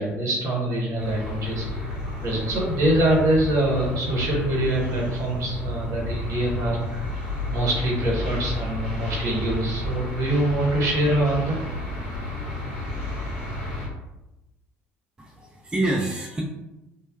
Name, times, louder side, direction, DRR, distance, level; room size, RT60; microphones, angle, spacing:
voice 1, 0.0-7.1 7.5-11.6, right 1 dB, 50° right, -3 dB, 1.0 m, -24 dB
sound 1, 1.0-13.9, left 1 dB, 85° left, 0.8 m, -31 dB
voice 2, 15.2-16.4, right 2 dB, 10° right, -2 dB, 0.4 m, -27 dB
2.9 x 2.0 x 2.3 m, 0.95 s
figure-of-eight pair, 55°, 7 cm